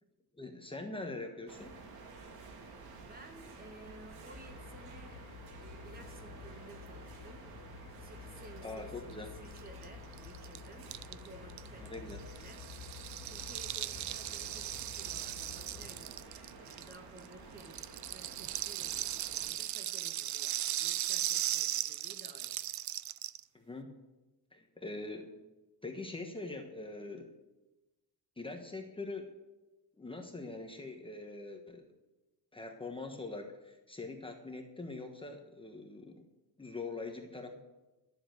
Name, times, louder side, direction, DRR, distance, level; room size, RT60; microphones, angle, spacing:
voice 1, 0.4-1.7 8.6-9.3 11.8-12.2 23.5-23.9 24.5-25.4 25.8-27.3 28.4-29.4 30.0-31.9 32.5-36.2 36.6-37.6, left 3 dB, 15° left, 3 dB, 1.2 m, -43 dB
sound 1, 1.5-19.5, right 4 dB, 70° right, 2.3 m, -52 dB
voice 2, 3.0-5.2 5.6-7.5 8.0-8.9 9.2-12.7 13.0-22.6, right 2 dB, 25° right, 6 dB, 1.5 m, -55 dB
sound 2, 4.3-16.0, left 8 dB, 65° left, 2.7 m, -51 dB
Rattle (instrument), 9.6-9.7 9.8-9.9 10.1-17.3 17.6-23.4, right 13 dB, 50° right, 0.5 m, -37 dB
12.5 x 7.9 x 7.8 m, 1.1 s
cardioid pair, 140°, 38 cm